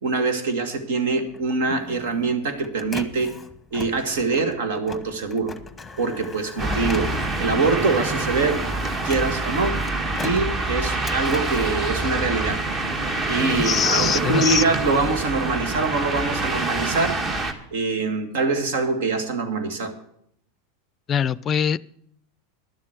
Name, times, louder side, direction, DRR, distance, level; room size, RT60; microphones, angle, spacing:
voice 1, 0.0-3.3 3.7-5.6 6.0-8.7 9.0-9.8 10.2-12.6 13.3-17.2 17.7-19.9, right 3 dB, 70° right, 8 dB, 1.9 m, -24 dB
Printer, 1.3-12.7 13.2-15.0, left 4 dB, 10° left, 1.0 m, -40 dB
sound 1, 6.6-17.5, right 2 dB, 30° right, 1.6 m, -26 dB
voice 2, 13.6-14.6 21.1-21.8, left 8 dB, 30° left, 20 dB, 0.4 m, -22 dB
12.0 x 7.5 x 7.9 m, 0.72 s
hypercardioid pair, 90°, 0 cm